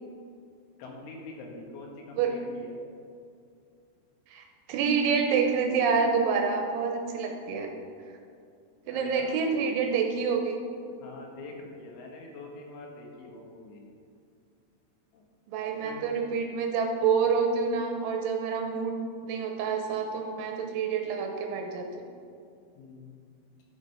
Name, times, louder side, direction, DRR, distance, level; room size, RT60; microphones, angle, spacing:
voice 1, 0.8-2.8 8.9-9.5 11.0-13.8 15.1-15.3 15.6-16.1 22.8-23.3, left 3 dB, 80° left, 0 dB, 3.8 m, -44 dB
voice 2, 4.3-7.7 8.9-10.6 15.5-18.9 19.2-22.1, right 5 dB, 80° right, 3 dB, 3.0 m, -27 dB
11.5 x 6.3 x 5.6 m, 2.3 s
omnidirectional pair, 5.7 m